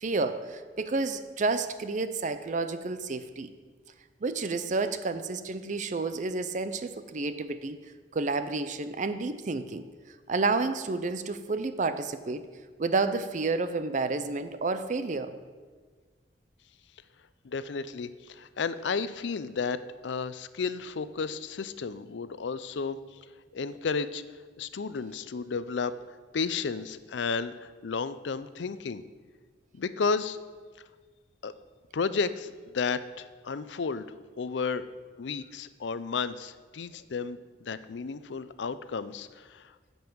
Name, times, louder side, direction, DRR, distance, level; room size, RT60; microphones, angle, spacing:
voice 1, 0.0-3.5 4.2-7.8 8.1-9.9 10.3-12.5 12.8-15.4, right 3 dB, 45° right, 11 dB, 0.5 m, -30 dB
voice 2, 17.4-23.0 23.5-24.2 24.6-26.0 26.3-29.0 29.7-30.4 31.4-31.5 31.9-34.1 34.4-34.9 35.2-39.7, left 5 dB, 80° left, 14 dB, 0.5 m, -32 dB
10.5 x 5.4 x 7.8 m, 1.5 s
head